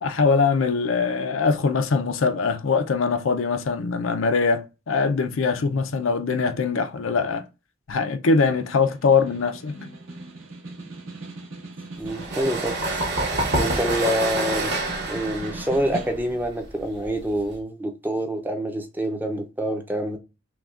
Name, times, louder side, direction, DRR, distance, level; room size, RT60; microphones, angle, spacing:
voice 1, 0.0-7.4 7.9-9.9, left 4 dB, 70° left, 0.5 m, -22 dB
Snare drum, 8.6-16.5, right 2 dB, 75° right, 1.5 m, -39 dB
voice 2, 12.0-12.8 13.6-14.7 15.0-20.2, equal, 10° right, 0.6 m, -26 dB
sound 1, 12.1-17.5, right 2 dB, 60° right, 1.2 m, -27 dB
5.8 x 2.3 x 2.4 m
head